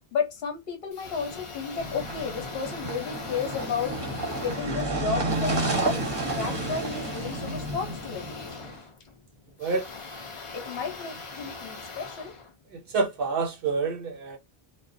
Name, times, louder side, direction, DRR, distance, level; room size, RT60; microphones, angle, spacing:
voice 1, 0.1-4.0 4.4-8.3 10.5-12.3, left 5 dB, 65° left, 0.9 m, -33 dB
sound 1, 0.9-13.1, left 4 dB, 45° left, 0.4 m, -41 dB
sound 2, 1.8-8.8, right 2 dB, 25° right, 0.8 m, -31 dB
voice 2, 12.7-14.4, right 4 dB, 65° right, 0.7 m, -28 dB
2.4 x 2.1 x 2.5 m
omnidirectional pair, 1.1 m